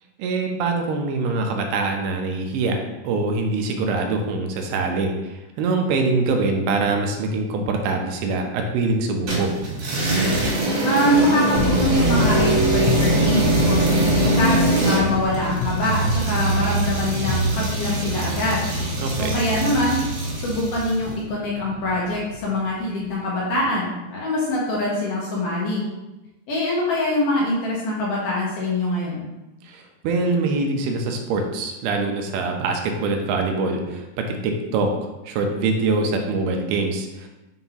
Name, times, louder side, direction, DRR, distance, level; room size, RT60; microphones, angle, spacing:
voice 1, 0.2-9.5 19.0-19.3 29.6-34.9 35.3-37.3, right 3 dB, 80° right, 3 dB, 2.6 m, -24 dB
sound 1, 9.3-21.0, right 2 dB, 65° right, 3.4 m, -22 dB
voice 2, 10.8-18.7 19.2-20.0 20.3-25.9 26.5-29.2, left 1 dB, 70° left, -5 dB, 2.1 m, -24 dB
sound 2, 11.6-23.1, left 5 dB, 90° left, 2.7 m, -29 dB
6.9 x 2.6 x 5.6 m, 1.0 s
omnidirectional pair, 4.6 m